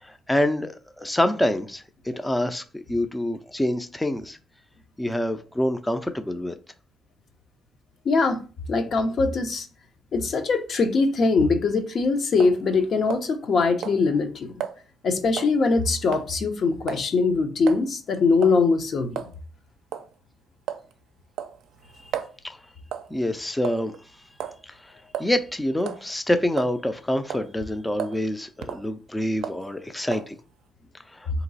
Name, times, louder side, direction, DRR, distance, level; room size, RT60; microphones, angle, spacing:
voice 1, 0.0-2.6 2.9-4.4 5.0-6.5 22.4-22.6 23.1-23.9 24.6-24.9 25.2-30.4 31.1-31.3, left 1 dB, 10° left, 0.4 m, -26 dB
voice 2, 8.0-8.4 8.7-9.7 10.1-14.5 15.0-19.3, left 4 dB, 55° left, 0.8 m, -22 dB
sound 1, 12.4-12.6 13.1-13.5 13.8-14.0 14.6-14.8 15.4-15.6 16.1-16.3 16.9-17.1 17.7-17.8 18.4-18.6 19.2-19.3 19.9-20.1 20.7-20.9 21.4-22.3 22.9-23.1 23.6-24.0 24.4-24.6 25.1-25.3 25.8-26.0 26.6-27.0 27.3-27.5 28.0-28.2 28.6-28.9 29.4-29.6 30.1-30.3, right 10 dB, 80° right, 0.4 m, -33 dB
3.8 x 2.9 x 4.0 m
cardioid pair, 90°, 0 cm